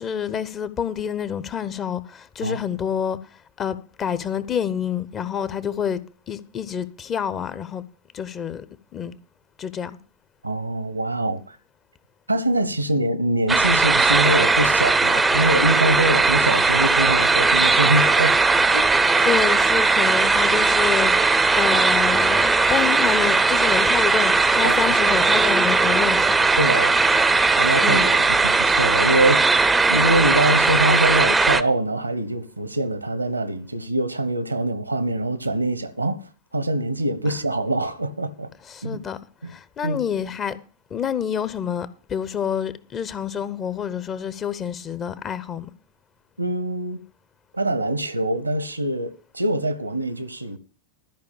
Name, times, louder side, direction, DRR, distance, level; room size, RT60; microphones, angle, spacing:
voice 1, 0.0-3.2 3.6-6.0 6.3-7.8 8.1-8.6 8.9-9.1 9.6-9.9 19.2-26.4 27.8-28.1 38.6-39.2 39.5-40.6 40.9-45.7, left 8 dB, 25° left, 0.8 m, -27 dB
voice 2, 10.4-11.6 12.3-18.9 24.6-24.8 26.6-26.9 27.6-36.2 36.5-38.5 38.8-39.0 39.4-39.5 39.8-40.0 46.4-47.0 47.5-50.6, right 1 dB, 85° right, 1.1 m, -24 dB
sound 1, 13.5-31.6, right 3 dB, 10° right, 0.6 m, -18 dB
13.0 x 5.2 x 8.5 m
figure-of-eight pair, 90°, 0 cm